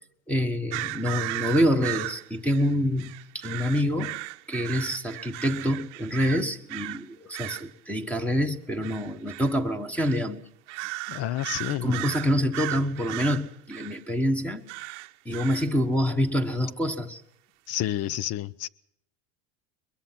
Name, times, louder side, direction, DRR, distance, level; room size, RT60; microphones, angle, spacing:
voice 1, 0.3-4.2 4.5-10.4 11.8-14.6 15.2-17.2, equal, 5° left, 1.3 m, -26 dB
sound 1, 0.7-7.0 7.3-7.7 8.8-9.6 10.0-10.3 10.7-14.0 14.7-15.7, right 22 dB, 75° right, 0.9 m, -36 dB
voice 2, 11.1-12.0 17.7-18.7, left 12 dB, 45° left, 0.7 m, -30 dB
22.5 x 21.5 x 5.8 m
supercardioid pair, 130°, 36 cm